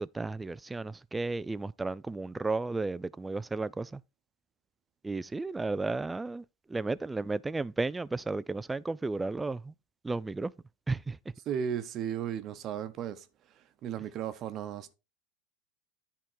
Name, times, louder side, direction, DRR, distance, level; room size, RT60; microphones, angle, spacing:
voice 1, 0.0-4.0 5.0-6.4 6.7-9.7 10.0-10.5 10.9-11.2, right 3 dB, 10° right, 0.3 m, -33 dB
voice 2, 11.5-13.3 13.8-14.9, right 9 dB, 40° right, 0.9 m, -35 dB
10.5 x 3.6 x 4.5 m
supercardioid pair, 130°, 0 cm